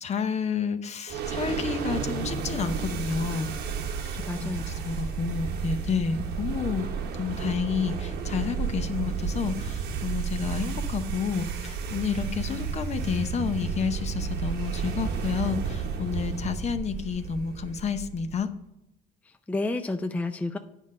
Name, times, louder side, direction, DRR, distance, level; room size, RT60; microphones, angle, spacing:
voice 1, 0.0-3.5 4.1-18.5, left 6 dB, 40° left, 10 dB, 0.8 m, -30 dB
sound 1, 1.1-18.5, right 6 dB, 80° right, 1.1 m, -32 dB
voice 2, 4.3-4.8 19.5-20.6, left 2 dB, 10° left, 7 dB, 0.5 m, -30 dB
9.1 x 5.2 x 5.5 m, 0.87 s
cardioid pair, 110°, 17 cm